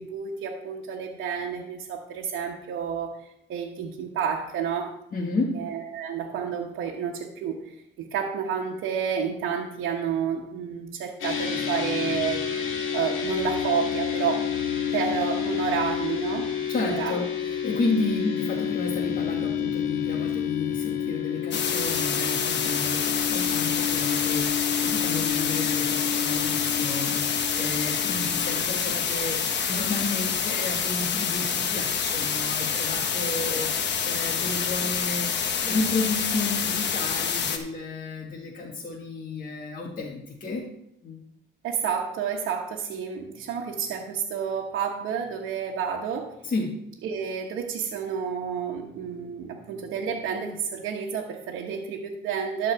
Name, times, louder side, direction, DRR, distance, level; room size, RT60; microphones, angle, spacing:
voice 1, 0.0-3.1 3.5-5.0 5.5-14.5 14.9-16.5 16.8-17.1 41.6-46.3 47.0-52.7, right 7 dB, 85° right, -2 dB, 1.1 m, -30 dB
voice 2, 5.1-5.5 16.7-35.3 35.6-40.7 41.0-41.2 46.4-46.7, left 3 dB, 45° left, -1 dB, 1.5 m, -32 dB
sound 1, 11.2-28.6, left 8 dB, 85° left, 1.8 m, -29 dB
sound 2, 21.5-37.6, left 7 dB, 60° left, 1.2 m, -27 dB
12.0 x 4.1 x 6.9 m, 0.80 s
cardioid pair, 90°, 20 cm